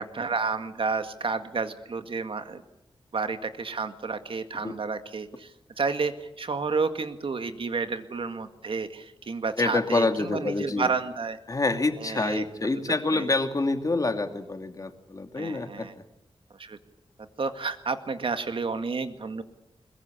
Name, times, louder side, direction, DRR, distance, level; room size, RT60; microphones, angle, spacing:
voice 1, 0.0-2.6 3.1-5.5 5.8-11.4 12.0-12.4 13.1-13.3 15.4-15.9 16.6-16.8 17.4-19.4, right 4 dB, 60° right, 8 dB, 2.0 m, -30 dB
voice 2, 9.6-10.9 11.5-15.9, left 3 dB, 35° left, 6 dB, 2.4 m, -27 dB
22.0 x 21.5 x 8.5 m, 0.91 s
wide cardioid pair, 115°, 10 cm